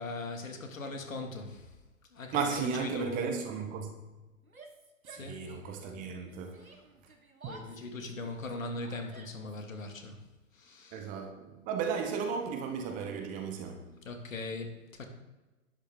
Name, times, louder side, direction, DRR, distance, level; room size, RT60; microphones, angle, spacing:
voice 1, 0.0-1.7 2.1-3.2 5.2-5.4 7.5-10.2 10.5-11.0 14.0-15.1, left 3 dB, 70° left, 2.5 m, -40 dB
voice 2, 2.3-3.9 5.0-6.7 7.4-7.6 10.9-13.9, right 6 dB, 20° right, 1.0 m, -35 dB
Yell, 4.4-5.9 6.2-9.6, right 3 dB, 90° right, 1.7 m, -54 dB
11.5 x 10.5 x 3.8 m
figure-of-eight pair, 125°, 41 cm